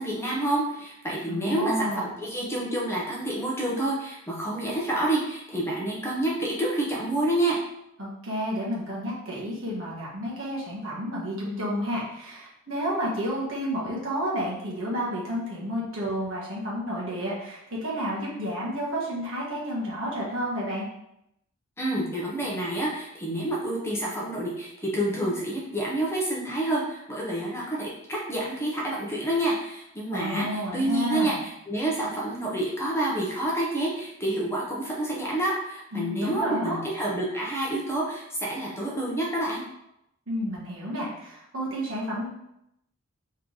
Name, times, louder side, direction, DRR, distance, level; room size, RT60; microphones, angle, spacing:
voice 1, 0.0-7.6 21.8-39.6, right 1 dB, 10° left, -4 dB, 0.8 m, -28 dB
voice 2, 1.3-2.1 8.0-20.8 30.1-31.4 35.9-36.8 40.3-42.3, equal, 65° right, -5 dB, 1.4 m, -31 dB
3.6 x 3.2 x 3.9 m, 0.81 s
head